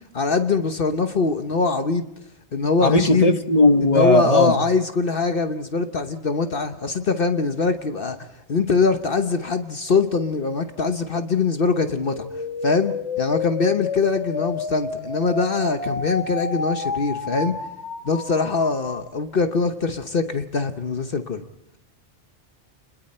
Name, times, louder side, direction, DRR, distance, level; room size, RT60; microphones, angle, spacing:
voice 1, 0.1-2.0 2.5-3.3 3.9-8.2 8.5-12.3 12.6-17.6 18.0-21.4, left 4 dB, 55° left, 1.2 m, -23 dB
voice 2, 2.8-4.5, left 2 dB, 35° left, 1.1 m, -17 dB
sound 1, 12.0-19.0, left 5 dB, 85° left, 2.0 m, -30 dB
29.5 x 21.5 x 4.4 m
omnidirectional pair, 1.1 m